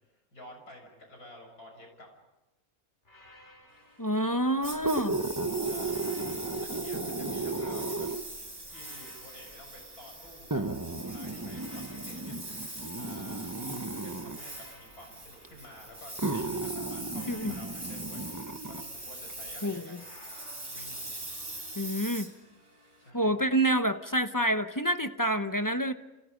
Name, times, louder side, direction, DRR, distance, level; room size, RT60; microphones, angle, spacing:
voice 1, 0.0-2.1 4.4-5.0 5.5-6.0 6.6-8.1 8.7-10.6 11.0-12.4 12.9-13.5 13.9-18.3 18.7-20.1 20.7-21.2 23.0-23.4, left 1 dB, 80° left, 2 dB, 7.4 m, -51 dB
sound 1, 3.0-5.2 5.8-8.0 8.7-10.8 11.5-13.6 14.3-16.4 17.1-19.3 19.9-22.0, left 1 dB, 50° left, 5.2 m, -58 dB
voice 2, 4.0-5.2 17.3-17.5 19.6-20.0 21.8-22.3 23.1-25.9, right 1 dB, 15° left, 8 dB, 0.8 m, -28 dB
Engine, 4.6-23.1, right 1 dB, 30° right, 4.3 m, -42 dB
sound 2, 4.7-8.4 9.3-9.4 10.5-14.4 15.4-15.5 16.2-18.9 19.3-19.4, right 2 dB, 15° right, 1.0 m, -34 dB
30.0 x 29.0 x 5.2 m, 1.0 s
omnidirectional pair, 1.5 m